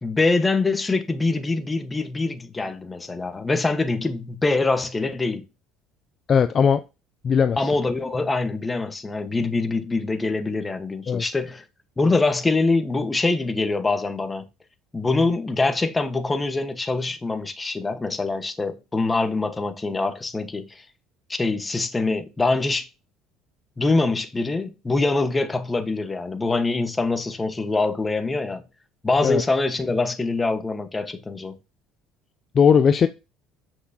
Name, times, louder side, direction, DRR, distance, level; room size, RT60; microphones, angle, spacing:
voice 1, 0.0-5.4 7.6-11.6 12.0-14.4 14.9-20.8 21.3-22.9 23.8-28.6 29.0-31.6, left 3 dB, 15° left, 1.3 m, -24 dB
voice 2, 6.3-6.8 7.2-7.6 11.1-11.2 29.2-29.4 32.6-33.1, left 7 dB, 40° left, 0.5 m, -17 dB
8.1 x 6.2 x 2.8 m
supercardioid pair, 105°, 0 cm